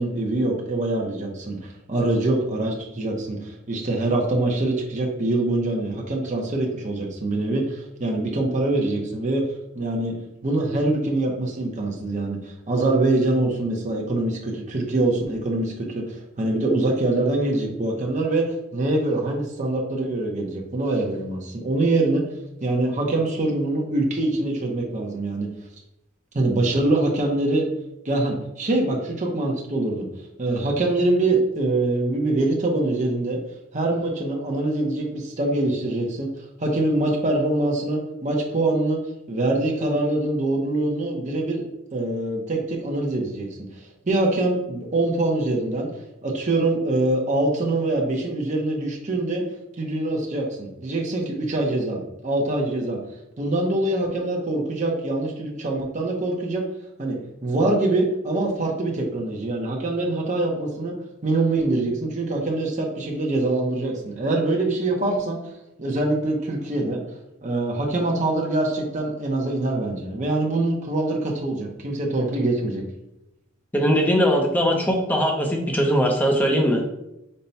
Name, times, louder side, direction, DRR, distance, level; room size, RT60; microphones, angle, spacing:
voice 1, 0.0-9.5 9.7-10.2 10.4-22.2 22.6-25.5 26.3-27.7 28.0-30.1 30.4-33.4 33.7-36.3 36.6-39.0 39.3-41.6 41.9-43.5 44.0-45.9 46.2-49.4 49.8-53.0 53.4-56.6 57.0-60.9 61.2-65.4 65.8-67.0 67.4-72.8, right 2 dB, 35° right, -1 dB, 0.7 m, -24 dB
voice 2, 73.7-76.8, equal, 10° left, 1 dB, 0.6 m, -20 dB
5.4 x 2.2 x 4.1 m, 0.88 s
head